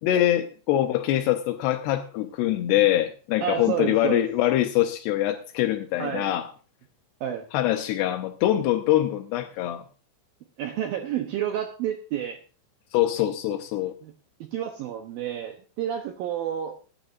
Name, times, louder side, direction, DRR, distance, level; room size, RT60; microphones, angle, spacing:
voice 1, 0.0-6.5 7.5-9.8 12.9-13.9, left 13 dB, 80° left, 2.6 m, -24 dB
voice 2, 3.4-4.3 6.0-6.3 7.2-7.5 10.6-12.4 14.0-14.1 14.4-16.8, right 10 dB, 80° right, 2.1 m, -30 dB
20.0 x 10.0 x 2.6 m
omnidirectional pair, 5.4 m